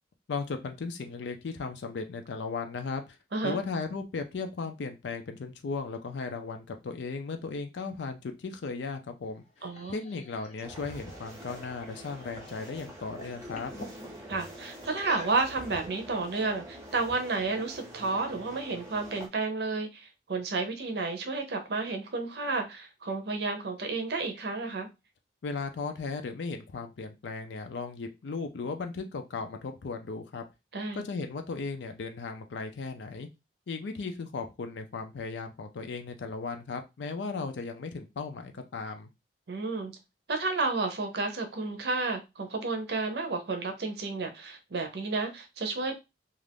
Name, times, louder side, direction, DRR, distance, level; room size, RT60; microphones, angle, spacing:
voice 1, 0.3-3.2 3.4-13.7 25.4-30.4 30.9-33.3 33.7-39.1, left 4 dB, 85° left, 0.4 m, -36 dB
sound 1, 9.2-12.6 12.9-14.0 14.9-15.7, left 1 dB, 35° left, 0.5 m, -47 dB
voice 2, 9.6-10.0 14.3-24.9 30.7-31.0 39.5-39.9 40.3-45.9, right 3 dB, 65° right, 0.6 m, -31 dB
sound 2, 10.6-19.3, right 1 dB, 15° right, 0.6 m, -45 dB
2.4 x 2.4 x 3.3 m
head